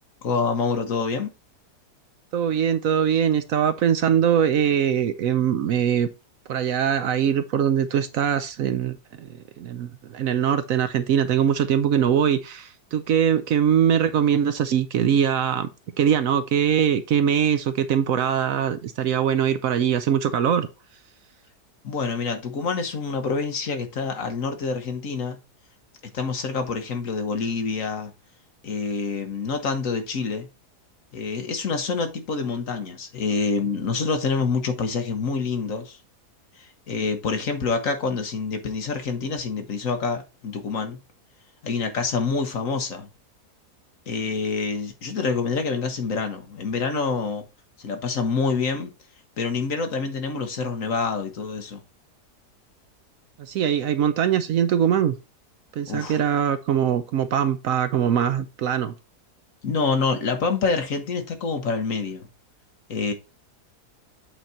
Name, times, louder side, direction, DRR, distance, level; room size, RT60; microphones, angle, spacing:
voice 1, 0.2-1.3 21.8-25.4 26.1-28.1 28.6-30.5 31.1-36.0 36.6-41.0 41.6-43.1 44.1-47.5 47.8-48.9 49.4-51.8 55.9-56.2 59.6-62.3 62.9-63.1, left 4 dB, 55° left, 1.5 m, -27 dB
voice 2, 2.3-6.1 6.5-15.7 16.0-20.7 53.4-55.2 55.8-58.9, right 8 dB, 70° right, 0.9 m, -22 dB
8.3 x 4.0 x 4.3 m
omnidirectional pair, 1.7 m